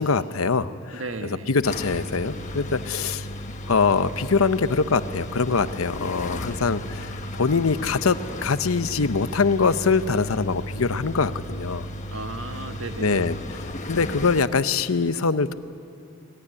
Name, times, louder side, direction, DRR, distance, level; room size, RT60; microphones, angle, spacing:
voice 1, 0.0-1.0 1.5-3.3 3.7-8.2 8.4-11.9 13.0-13.4 13.9-15.5, left 4 dB, 85° left, 12 dB, 0.8 m, -23 dB
voice 2, 0.9-1.6 12.1-13.4, right 2 dB, 75° right, 6 dB, 1.6 m, -35 dB
sound 1, 1.6-14.4, left 1 dB, 35° left, 1.3 m, -35 dB
25.0 x 19.5 x 9.9 m, 2.6 s
head